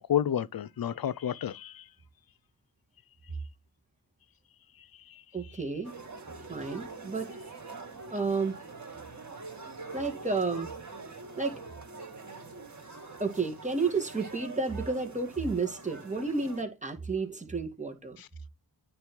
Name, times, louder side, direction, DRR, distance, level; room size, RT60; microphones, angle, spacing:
voice 1, 0.0-1.8 18.2-18.3, left 10 dB, 55° left, 0.6 m, -30 dB
voice 2, 5.3-5.9 6.5-7.3 8.1-8.6 9.9-10.7 11.4-11.6 13.2-18.2, right 4 dB, 15° right, 2.2 m, -31 dB
sound 1, 5.8-16.6, right 3 dB, 45° right, 3.2 m, -45 dB
9.6 x 3.3 x 4.5 m
cardioid pair, 60°, 42 cm